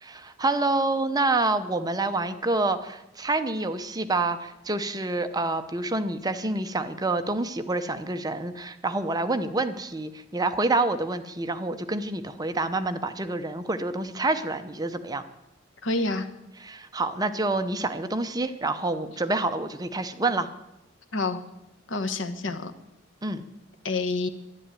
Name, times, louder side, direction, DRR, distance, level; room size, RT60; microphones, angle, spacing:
voice 1, 0.0-15.2 16.6-20.5 23.2-23.4, right 2 dB, 20° right, 9 dB, 0.7 m, -27 dB
voice 2, 15.8-16.3 21.1-21.4 21.9-22.7 23.8-24.3, left 3 dB, 75° left, 9 dB, 1.2 m, -27 dB
11.0 x 11.0 x 9.0 m, 0.92 s
head